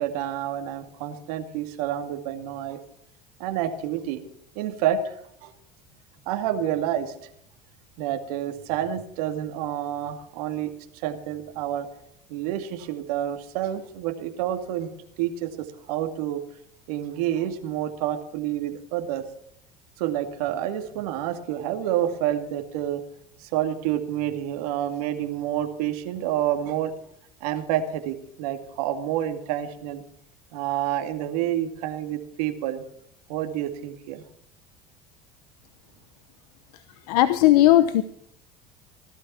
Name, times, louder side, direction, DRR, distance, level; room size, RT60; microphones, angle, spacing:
voice 1, 0.0-2.8 3.4-4.2 4.6-5.2 5.4-5.5 6.3-7.3 8.0-11.9 12.3-16.4 16.9-19.2 20.0-23.0 23.4-26.9 27.4-30.0 30.5-32.8 33.3-34.2, right 11 dB, 80° right, 6 dB, 2.2 m, -28 dB
voice 2, 37.1-38.0, left 14 dB, 85° left, 12 dB, 0.9 m, -17 dB
19.0 x 12.5 x 4.3 m, 0.69 s
supercardioid pair, 90°, 19 cm